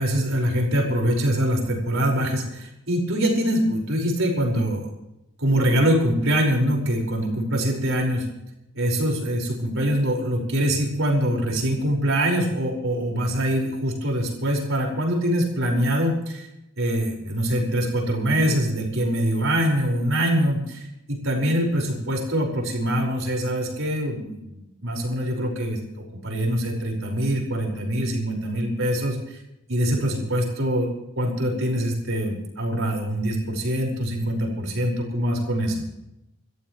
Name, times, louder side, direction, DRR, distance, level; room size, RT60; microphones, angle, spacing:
voice 1, 0.0-4.9 5.4-8.3 8.7-16.5 16.8-29.4 29.7-30.9 31.1-35.7, equal, 60° right, 0 dB, 5.2 m, -24 dB
28.0 x 14.0 x 3.2 m, 0.88 s
head